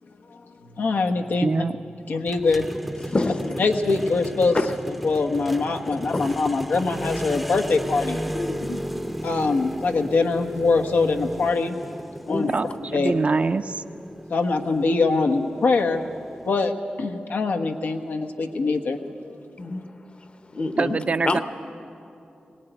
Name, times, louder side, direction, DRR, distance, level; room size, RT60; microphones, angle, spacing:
voice 1, 0.7-1.5 2.1-2.7 3.6-4.6 4.9-8.2 9.2-11.8 12.3-12.5 12.9-13.1 14.3-16.0 16.4-16.7 17.0-19.4, left 3 dB, 85° left, 3 dB, 1.3 m, -23 dB
voice 2, 1.4-1.7 12.5-12.7 12.9-13.8 20.8-21.4, right 4 dB, 45° right, 9 dB, 0.6 m, -23 dB
sound 1, 2.3-16.6, equal, ahead, 0.7 m, -34 dB
voice 3, 3.0-3.6 4.5-4.7 6.1-6.4 8.3-8.9 12.3-12.6 19.6-19.9 20.5-21.0 21.2-21.4, left 2 dB, 35° left, 9 dB, 1.0 m, -27 dB
20.5 x 18.0 x 9.2 m, 2.7 s
wide cardioid pair, 110°, 3 cm